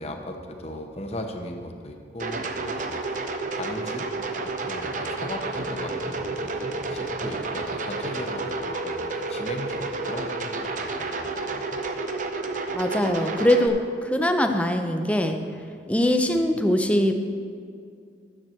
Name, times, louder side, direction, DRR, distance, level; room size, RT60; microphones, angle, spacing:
voice 1, 0.0-3.2 3.5-4.1 4.4-11.8, left 1 dB, 35° left, 4 dB, 0.9 m, -37 dB
sound 1, 2.2-13.7, right 3 dB, 45° right, 0.7 m, -30 dB
voice 2, 12.7-15.4 15.9-17.2, left 1 dB, 5° left, 5 dB, 0.6 m, -22 dB
12.5 x 7.6 x 4.5 m, 2.3 s
head